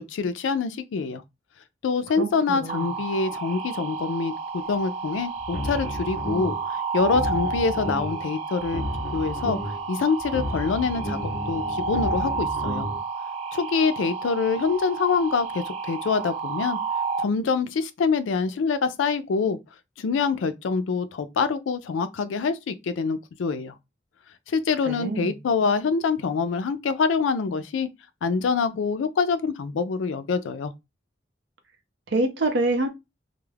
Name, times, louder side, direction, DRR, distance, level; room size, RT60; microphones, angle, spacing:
voice 1, 0.1-1.2 1.8-8.8 9.1-9.6 9.9-12.9 13.5-16.8 17.2-19.6 20.0-23.7 24.5-27.9 28.2-30.7, left 5 dB, 90° left, 0.4 m, -25 dB
voice 2, 2.2-2.9 24.9-25.4 32.1-32.9, right 2 dB, 75° right, 0.6 m, -26 dB
sound 1, 2.7-17.2, right 4 dB, 30° right, 0.3 m, -31 dB
sound 2, 5.4-6.7 7.0-8.3 8.6-9.9 10.2-13.0, equal, 50° left, 0.7 m, -32 dB
2.3 x 2.0 x 3.1 m
head